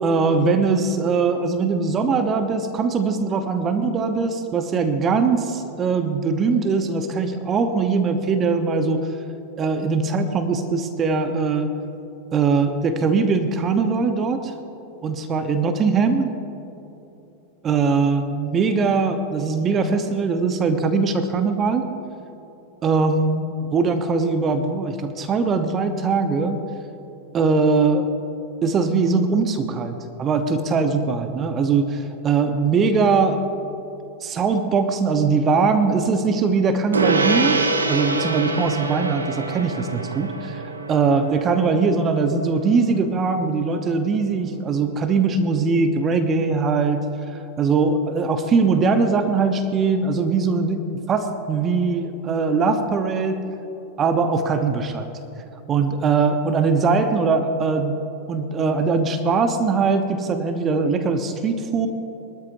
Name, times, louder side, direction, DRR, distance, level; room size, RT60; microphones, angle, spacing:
voice 1, 0.0-9.1 9.6-11.8 12.3-14.5 15.0-16.3 17.6-21.9 22.8-26.6 27.3-28.1 28.6-33.5 34.2-37.6 37.9-40.6 40.9-53.4 54.0-55.1 55.7-58.0 58.3-61.9, right 4 dB, 25° right, 7 dB, 1.1 m, -21 dB
Gong, 36.9-46.6, right 3 dB, 75° right, 1.0 m, -27 dB
22.5 x 13.5 x 2.7 m, 3.0 s
figure-of-eight pair, 90°, 0 cm